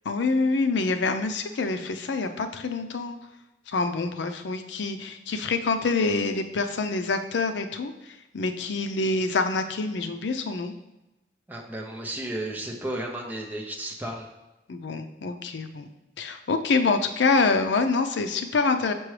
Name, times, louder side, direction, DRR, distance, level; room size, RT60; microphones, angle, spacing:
voice 1, 0.1-3.2 3.7-7.9 8.3-10.7 14.7-15.9 16.2-18.9, left 3 dB, 85° left, 7 dB, 0.5 m, -26 dB
voice 2, 11.5-14.3, right 1 dB, 10° right, 0 dB, 0.7 m, -33 dB
6.1 x 5.9 x 3.2 m, 0.98 s
head